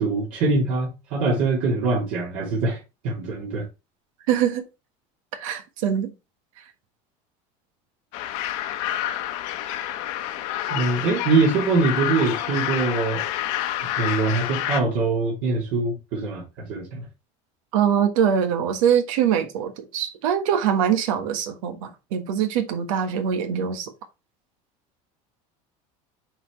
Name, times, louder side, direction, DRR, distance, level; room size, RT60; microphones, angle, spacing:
voice 1, 0.0-3.7 10.7-13.2 14.0-17.0, right 3 dB, 65° right, 2.9 m, -23 dB
voice 2, 4.3-4.6 5.3-6.1 17.7-23.9, right 8 dB, 90° right, 1.4 m, -23 dB
sound 1, 8.1-14.8, left 12 dB, 75° left, 1.2 m, -28 dB
8.7 x 4.2 x 3.1 m
cardioid pair, 140°, 17 cm